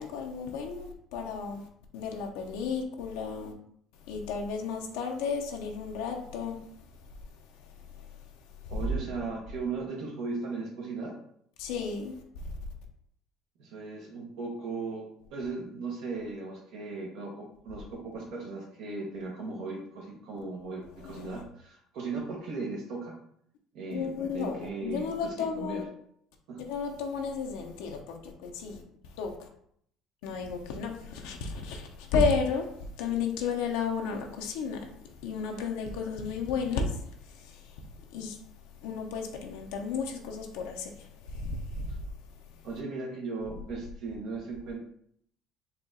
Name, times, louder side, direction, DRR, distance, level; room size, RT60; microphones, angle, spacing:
voice 1, 0.0-1.6 1.9-3.5 4.1-6.6 7.9-8.1 8.6-8.7 11.6-12.2 21.0-21.4 23.9-25.9 26.7-28.8 29.2-29.5 30.2-34.9 35.2-37.8 38.1-38.4 38.8-42.0, left 5 dB, 90° left, 0.6 m, -33 dB
voice 2, 8.7-11.1 13.6-23.1 23.7-25.9 26.5-26.7 41.9-42.0 42.6-44.8, right 3 dB, 75° right, 0.9 m, -37 dB
4.3 x 2.3 x 3.8 m
cardioid pair, 105°, 0 cm